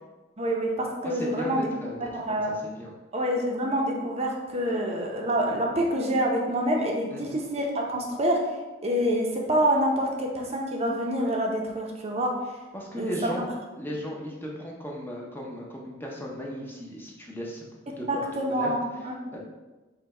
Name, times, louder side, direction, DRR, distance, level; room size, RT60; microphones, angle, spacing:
voice 1, 0.4-1.7 2.0-2.6 3.1-8.4 8.8-12.3 13.0-13.3 18.1-19.1, equal, 30° right, 0 dB, 0.6 m, -27 dB
voice 2, 1.0-2.9 7.1-7.4 12.7-13.5 13.8-18.1 18.3-18.7 19.3-19.4, equal, 10° left, -2 dB, 0.6 m, -36 dB
5.5 x 2.2 x 4.1 m, 1.2 s
head